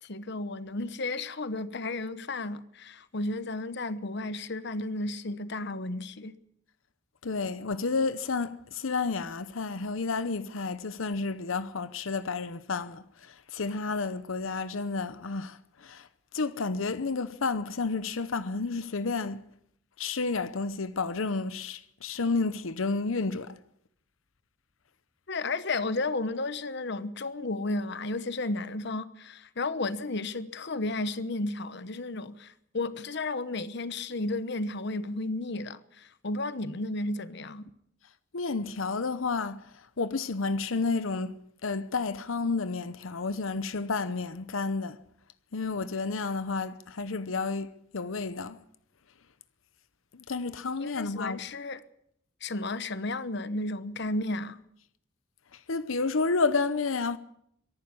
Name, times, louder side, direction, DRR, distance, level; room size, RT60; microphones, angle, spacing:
voice 1, 0.0-6.4 25.3-37.7 50.8-51.8 52.4-54.6, left 2 dB, 60° left, 1.0 m, -33 dB
voice 2, 7.2-16.1 16.3-19.4 20.0-23.6 38.3-45.0 45.5-48.6 50.1-51.4 55.5-57.2, left 4 dB, 85° left, 0.8 m, -31 dB
23.0 x 11.5 x 9.8 m
head